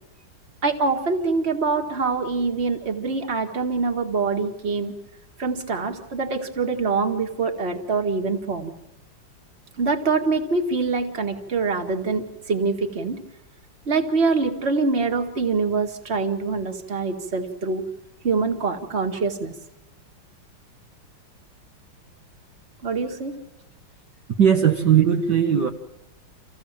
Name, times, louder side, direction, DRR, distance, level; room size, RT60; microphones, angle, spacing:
voice 1, 0.6-4.9 5.4-8.7 9.8-13.2 13.9-17.8 18.2-19.5 22.8-23.4, right 4 dB, 30° right, 4 dB, 2.1 m, -24 dB
voice 2, 24.4-25.7, right 8 dB, 60° right, 2 dB, 1.8 m, -18 dB
27.0 x 16.0 x 7.4 m, 0.96 s
omnidirectional pair, 2.2 m